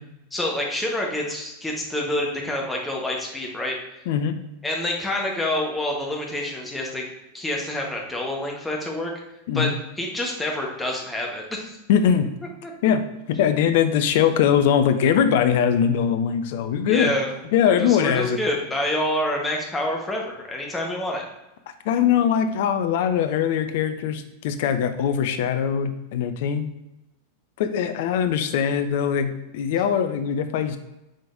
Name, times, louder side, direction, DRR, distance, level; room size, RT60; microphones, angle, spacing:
voice 1, 0.3-3.8 4.6-7.0 7.3-9.1 9.5-9.7 10.0-11.8 12.6-12.7 16.9-17.3 17.6-21.2, left 1 dB, 10° left, -1 dB, 1.0 m, -27 dB
voice 2, 4.1-4.4 9.5-9.7 11.9-12.3 12.8-13.0 13.4-17.1 17.5-18.4 21.9-26.7 27.6-30.8, left 8 dB, 50° left, 9 dB, 0.4 m, -21 dB
5.0 x 3.8 x 2.4 m, 0.95 s
figure-of-eight pair, 90°, 0 cm